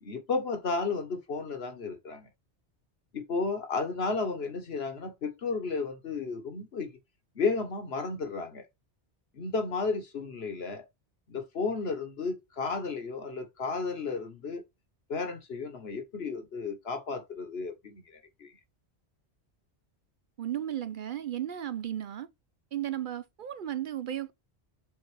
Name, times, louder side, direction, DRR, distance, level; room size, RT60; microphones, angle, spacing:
voice 1, 0.0-2.3 3.1-6.9 7.3-8.6 9.3-10.8 11.3-14.6 15.1-18.5, left 4 dB, 65° left, 1.5 m, -33 dB
voice 2, 20.4-22.3 22.7-24.3, right 11 dB, 60° right, 0.6 m, -34 dB
7.1 x 3.9 x 3.4 m
omnidirectional pair, 1.1 m